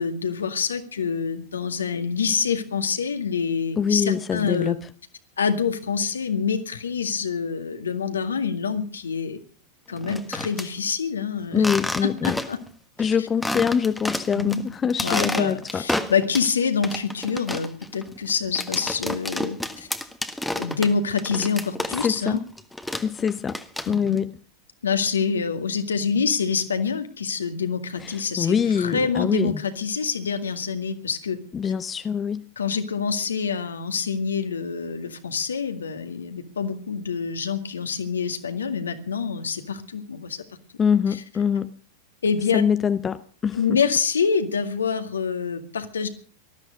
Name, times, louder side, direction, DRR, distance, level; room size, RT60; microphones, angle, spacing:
voice 1, 0.0-4.8 5.4-9.4 9.9-11.6 12.0-12.6 13.0-13.3 14.3-14.6 15.0-19.9 20.6-22.4 23.9-24.2 24.8-31.4 32.6-40.4 42.2-42.6 43.5-46.1, left 6 dB, 70° left, 2.0 m, -26 dB
voice 2, 3.8-4.8 11.5-12.4 13.0-15.8 22.0-22.4 23.0-23.6 23.9-24.4 28.0-29.6 31.5-32.4 40.8-41.7 42.5-43.6, left 7 dB, 20° left, 0.7 m, -24 dB
sound 1, 10.0-10.7 11.6-12.7 13.0-13.1 13.4-14.6 14.9-16.5 16.8-22.3 22.6-24.2, left 1 dB, 5° left, 1.5 m, -30 dB
19.5 x 13.5 x 5.3 m
figure-of-eight pair, 90°, 0 cm